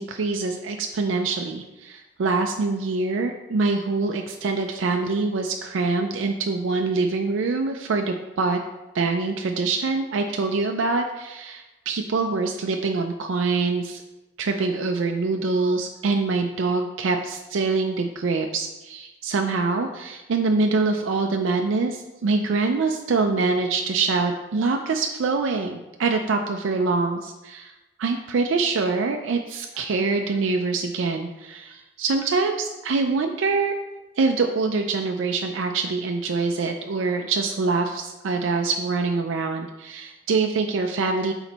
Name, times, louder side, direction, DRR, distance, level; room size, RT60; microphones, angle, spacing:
voice 1, 0.0-8.6 8.9-14.0 14.4-27.7 28.0-33.7 34.2-41.3, right 3 dB, 90° right, 4 dB, 0.4 m, -24 dB
6.0 x 3.9 x 4.1 m, 1.1 s
head